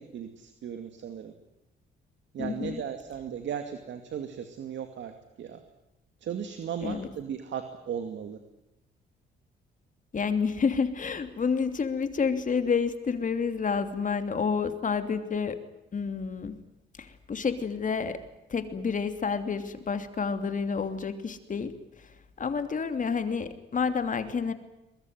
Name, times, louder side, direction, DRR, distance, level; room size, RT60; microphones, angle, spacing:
voice 1, 0.0-1.3 2.3-5.1 5.4-5.6 6.2-8.4, right 8 dB, 65° right, 7 dB, 2.4 m, -36 dB
voice 2, 2.4-2.8 6.8-7.1 10.1-15.6 15.9-16.6 17.0-18.2 18.5-24.5, left 5 dB, 40° left, 9 dB, 2.9 m, -29 dB
23.5 x 21.5 x 9.5 m, 0.90 s
cardioid pair, 90°, 20 cm